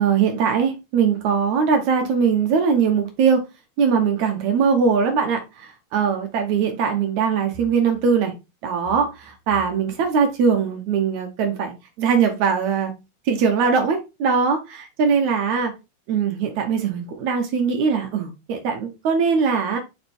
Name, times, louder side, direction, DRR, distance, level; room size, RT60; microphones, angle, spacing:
voice 1, 0.0-3.4 3.8-5.4 5.9-8.3 8.6-11.7 12.0-12.9 13.3-15.7 16.1-19.8, right 6 dB, 75° right, 2.4 m, -21 dB
5.4 x 5.0 x 4.3 m
omnidirectional pair, 3.3 m